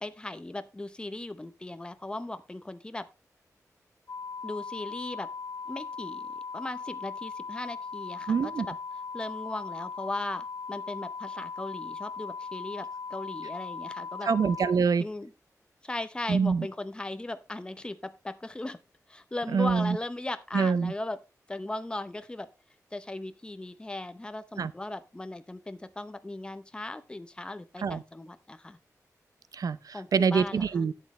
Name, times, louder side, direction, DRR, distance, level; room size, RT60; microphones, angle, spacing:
voice 1, 0.0-3.1 4.4-5.3 5.7-8.7 9.1-14.3 15.0-15.3 15.8-18.8 19.1-21.2 21.5-22.5 22.9-28.8 29.9-30.9, left 2 dB, 15° left, 0.7 m, -38 dB
sound 1, 4.1-14.7, left 5 dB, 70° left, 1.5 m, -39 dB
voice 2, 8.3-8.7 14.2-15.1 16.3-16.7 19.5-20.0 20.5-20.9 24.6-24.7 27.8-28.0 29.5-30.9, right 5 dB, 80° right, 0.6 m, -25 dB
11.5 x 8.5 x 3.2 m
wide cardioid pair, 145°, 6 cm